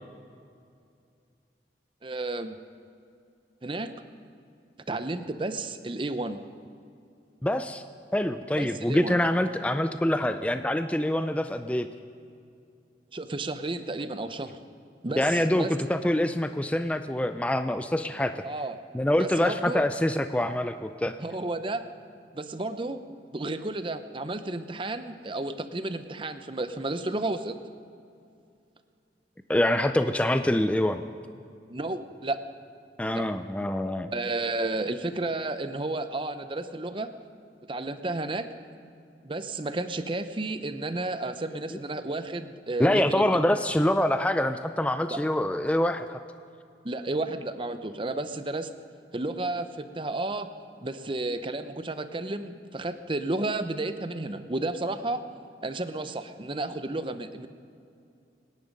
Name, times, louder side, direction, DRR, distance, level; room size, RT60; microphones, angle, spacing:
voice 1, 2.0-2.6 3.6-3.9 4.9-6.4 8.6-9.2 13.1-14.6 15.0-15.7 18.4-18.8 19.2-19.8 21.2-21.8 22.3-23.0 23.3-27.6 31.7-32.4 33.1-33.3 34.1-37.1 37.7-38.5 39.2-43.3 45.1-45.2 46.8-48.7 49.1-50.5 50.8-55.2 55.6-57.5, right 2 dB, 30° right, 10 dB, 0.7 m, -32 dB
voice 2, 7.4-7.8 8.1-11.9 15.2-18.3 18.9-21.2 29.5-31.0 33.0-34.1 41.7-41.8 42.8-46.2, left 1 dB, 5° left, 9 dB, 0.4 m, -25 dB
25.5 x 10.5 x 5.3 m, 2.5 s
head